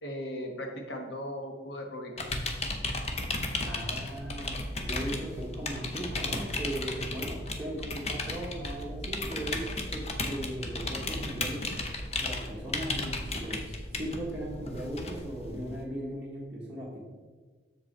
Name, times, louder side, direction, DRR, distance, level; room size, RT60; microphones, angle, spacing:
voice 1, 0.0-2.1, equal, 70° left, 2 dB, 1.2 m, -37 dB
sound 1, 2.2-15.8, left 2 dB, 35° left, 0.7 m, -35 dB
voice 2, 3.6-11.7 12.2-17.0, right 1 dB, 10° right, -8 dB, 1.0 m, -38 dB
6.7 x 5.0 x 4.3 m, 1.4 s
head